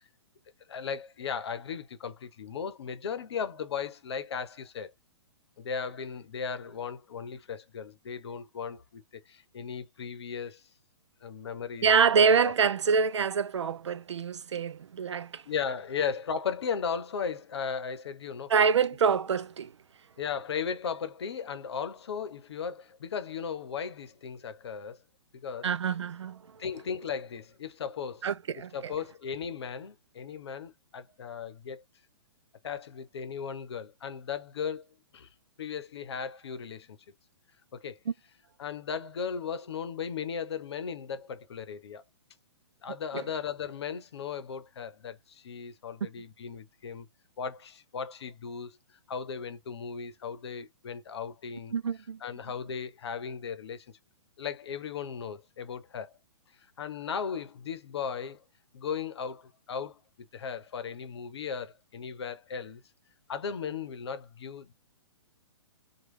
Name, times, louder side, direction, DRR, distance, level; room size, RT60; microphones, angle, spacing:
voice 1, 0.7-4.9 5.6-10.7 11.2-11.9 12.4-12.5 15.5-18.5 20.2-25.0 25.3-25.7 26.6-28.3 28.7-31.8 32.6-35.3 35.6-37.0 37.7-38.0 38.6-42.0 42.8-47.1 47.4-48.8 49.1-51.7 52.2-53.9 54.4-56.2 56.8-58.4 58.7-62.8 63.3-64.7, left 6 dB, 65° left, 0.8 m, -36 dB
voice 2, 11.8-15.4 18.5-19.7 25.6-26.6 28.2-28.9 51.7-52.2, right 6 dB, 85° right, 0.4 m, -26 dB
3.1 x 2.4 x 3.0 m
hypercardioid pair, 130°, 15 cm